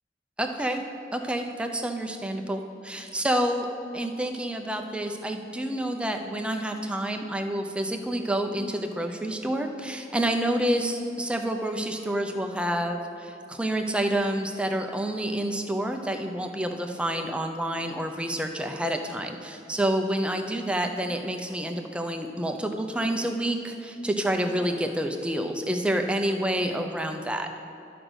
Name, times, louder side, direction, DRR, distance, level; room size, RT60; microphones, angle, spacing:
voice 1, 0.4-0.8 1.1-3.7 3.9-27.5, right 1 dB, 5° right, 4 dB, 0.6 m, -28 dB
12.0 x 5.1 x 6.3 m, 2.8 s
head